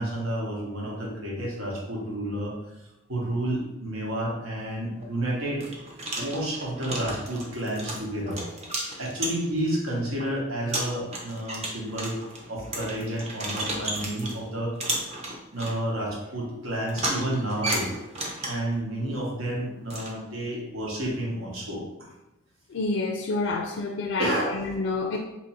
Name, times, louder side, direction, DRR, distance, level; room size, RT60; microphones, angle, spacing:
voice 1, 0.0-2.6 3.1-5.7 6.2-8.5 9.0-12.2 12.5-14.7 15.5-17.9 18.5-22.1 24.2-24.6, right 1 dB, 85° right, -3 dB, 1.1 m, -30 dB
sound 1, 4.9-5.0 5.6-9.7 10.2-10.3 10.7-14.4 14.8-15.7 16.9-18.7 19.9-20.1, right 1 dB, 30° right, 0.6 m, -33 dB
voice 2, 22.7-25.2, left 3 dB, 60° left, 0 dB, 0.4 m, -28 dB
2.9 x 2.7 x 4.1 m, 0.94 s
head